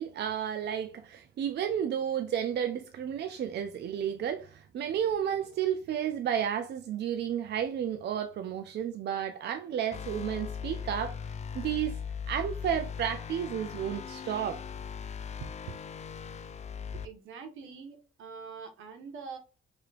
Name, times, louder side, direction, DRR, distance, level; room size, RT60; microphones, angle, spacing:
voice 1, 0.0-12.0 12.3-14.6, right 9 dB, 60° right, 0.5 m, -32 dB
sound 1, 9.9-17.1, left 7 dB, 35° left, 0.4 m, -39 dB
voice 2, 17.0-19.4, right 5 dB, 80° right, 1.1 m, -44 dB
4.8 x 3.2 x 2.4 m
cardioid pair, 90°, 20 cm